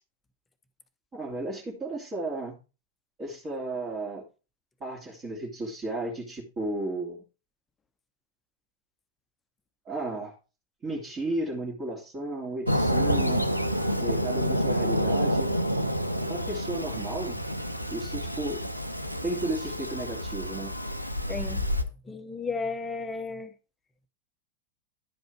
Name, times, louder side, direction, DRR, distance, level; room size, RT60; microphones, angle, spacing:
voice 1, 1.1-2.6 3.2-4.2 4.8-7.2 9.8-10.3 10.8-13.5 13.8-15.5 16.3-17.4 17.9-18.6 19.2-20.7, right 2 dB, 25° right, 2.7 m, -33 dB
Fireworks, 12.7-21.8, equal, 90° left, 0.8 m, -28 dB
voice 2, 21.3-21.6 22.0-23.5, left 4 dB, 15° left, 1.1 m, -33 dB
11.5 x 5.3 x 4.6 m
figure-of-eight pair, 90°, 0 cm